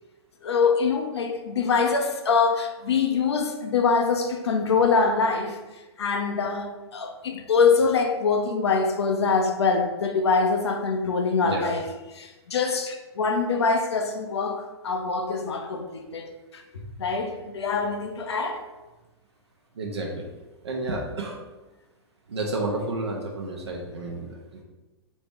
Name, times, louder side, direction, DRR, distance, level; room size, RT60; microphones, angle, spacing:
voice 1, 0.4-5.6 6.0-11.8 12.2-16.6 17.0-18.6, left 5 dB, 75° left, 0.7 m, -24 dB
voice 2, 11.4-11.7 19.7-20.3 20.6-21.4 22.3-24.6, right 2 dB, 75° right, 0.7 m, -31 dB
4.1 x 2.9 x 3.6 m
figure-of-eight pair, 105°, 14 cm